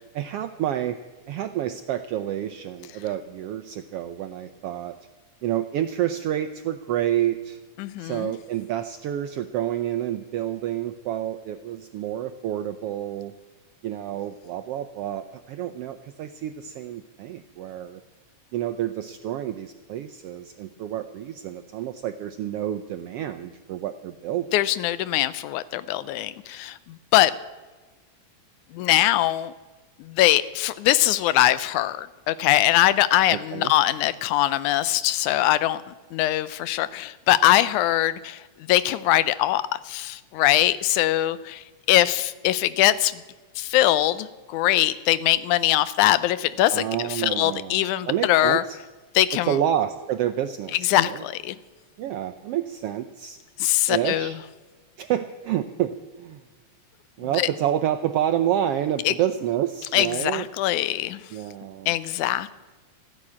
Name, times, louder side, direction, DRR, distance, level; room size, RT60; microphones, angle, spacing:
voice 1, 0.1-1.0 1.3-4.9 5.4-7.6 8.0-13.3 13.8-18.0 18.5-24.5 33.3-33.7 46.7-48.8 49.5-51.2 52.0-53.4 53.9-54.3 55.0-56.4 57.2-60.5 61.3-61.9, right 11 dB, 85° right, 9 dB, 1.3 m, -28 dB
voice 2, 7.8-8.3 24.5-27.3 28.7-29.5 30.0-43.2 43.6-48.6 49.1-49.6 50.7-51.6 53.6-54.4 57.3-57.5 59.1-59.2 59.9-61.2 61.9-62.5, left 14 dB, 85° left, 16 dB, 2.1 m, -22 dB
14.5 x 10.0 x 8.6 m, 1.3 s
omnidirectional pair, 3.4 m